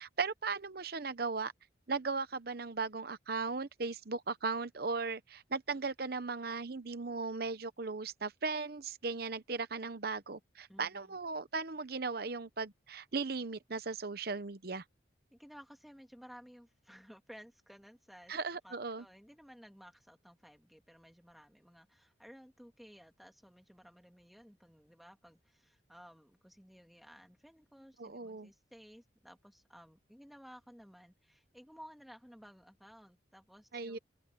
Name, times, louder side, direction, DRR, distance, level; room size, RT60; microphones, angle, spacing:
voice 1, 0.0-1.5 1.9-14.8 18.3-19.0 28.0-28.5 33.7-34.0, right 4 dB, 50° right, 0.9 m, -37 dB
voice 2, 10.7-11.2 15.3-18.3 18.6-34.0, equal, ahead, 2.5 m, -56 dB
open air
head